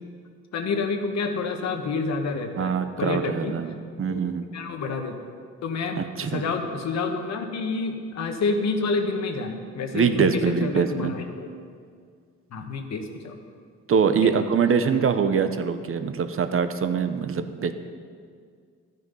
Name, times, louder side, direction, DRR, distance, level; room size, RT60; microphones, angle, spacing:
voice 1, 0.5-3.5 4.1-4.2 4.5-5.2 5.6-11.5 12.5-13.3 14.2-14.3, left 4 dB, 60° left, 5 dB, 1.3 m, -28 dB
voice 2, 2.6-4.5 6.0-6.4 9.9-11.1 13.9-17.7, right 6 dB, 45° right, 9 dB, 0.8 m, -24 dB
12.0 x 9.4 x 5.4 m, 2.1 s
cardioid pair, 90°, 30 cm